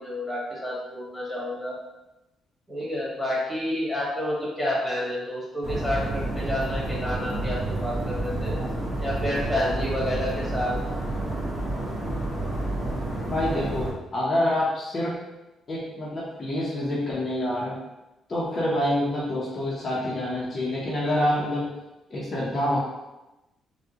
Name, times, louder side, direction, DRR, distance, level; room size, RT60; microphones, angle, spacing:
voice 1, 0.0-1.7 2.7-8.5 9.0-10.8, left 1 dB, ahead, -6 dB, 1.5 m, -29 dB
sound 1, 5.6-13.9, right 1 dB, 35° right, 1.4 m, -29 dB
voice 2, 13.3-15.2 15.7-17.8 18.3-21.7 22.1-22.8, left 1 dB, 40° left, -7 dB, 0.8 m, -27 dB
3.6 x 2.3 x 2.9 m, 1.0 s
cardioid pair, 90°, 0 cm